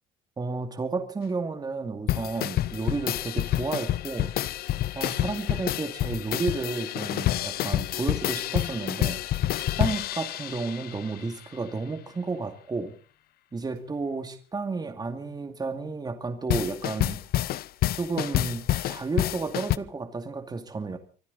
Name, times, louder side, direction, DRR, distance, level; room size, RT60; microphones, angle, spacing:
voice 1, 0.4-4.3 4.9-9.2 9.5-12.9 13.5-17.2 18.0-21.0, right 3 dB, 25° right, 7 dB, 2.4 m, -32 dB
sound 1, 2.1-11.3 16.5-19.8, left 14 dB, 65° left, 0.7 m, -28 dB
25.0 x 12.5 x 4.2 m, 0.41 s
cardioid pair, 110°, 17 cm